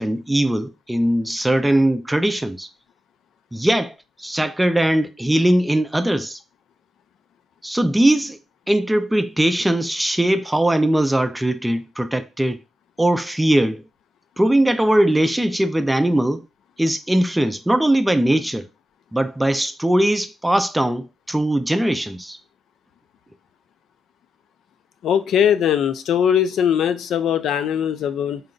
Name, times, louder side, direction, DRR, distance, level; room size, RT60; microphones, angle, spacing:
voice 1, 0.0-2.7 3.5-6.4 7.6-8.4 8.7-12.6 13.0-13.8 14.4-16.4 16.8-18.6 19.1-22.4, right 1 dB, 10° right, 0.3 m, -20 dB
voice 2, 25.0-28.4, left 9 dB, 75° left, 0.4 m, -20 dB
3.9 x 2.2 x 3.8 m
cardioid pair, 90°, 0 cm